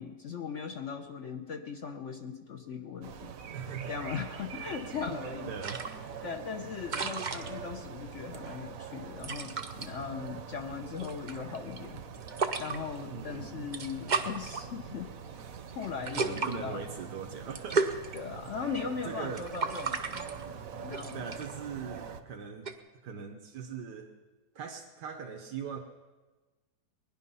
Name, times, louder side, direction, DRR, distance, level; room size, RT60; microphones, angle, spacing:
voice 1, 0.0-3.3 3.9-5.5 6.2-12.0 12.6-15.1 15.7-16.8 18.1-20.3 20.8-21.3, left 6 dB, 55° left, 5 dB, 1.0 m, -39 dB
sound 1, 3.0-22.2, right 7 dB, 60° right, 1.2 m, -44 dB
voice 2, 3.5-4.0 5.4-5.8 13.1-13.7 16.1-17.9 19.0-19.4 21.1-22.7 23.0-24.1 24.5-25.8, right 6 dB, 90° right, 2 dB, 1.7 m, -40 dB
sound 2, 5.6-22.7, right 4 dB, 40° right, 0.7 m, -37 dB
20.5 x 11.0 x 5.5 m, 1.2 s
omnidirectional pair, 1.8 m